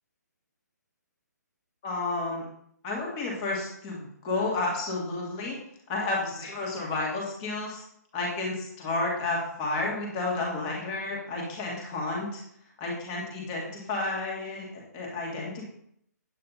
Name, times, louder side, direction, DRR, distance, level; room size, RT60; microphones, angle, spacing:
voice 1, 1.8-2.5 2.8-5.6 5.9-7.8 8.1-12.4 12.8-15.7, left 2 dB, 15° left, -2 dB, 2.0 m, -31 dB
8.9 x 8.7 x 4.1 m, 0.70 s
hypercardioid pair, 180°, 10 cm